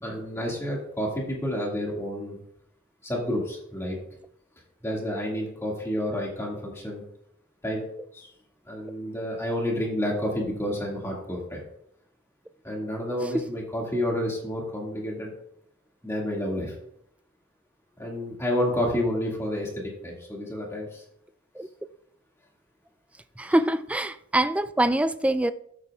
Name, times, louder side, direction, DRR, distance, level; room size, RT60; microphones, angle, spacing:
voice 1, 0.0-2.4 3.0-4.0 4.8-7.0 7.6-7.9 8.1-8.3 8.7-11.6 12.6-15.3 16.0-16.7 18.0-21.0 23.5-23.6, left 1 dB, 15° left, 2.2 m, -30 dB
voice 2, 23.4-25.5, right 1 dB, 5° right, 0.3 m, -24 dB
13.0 x 8.5 x 2.4 m
head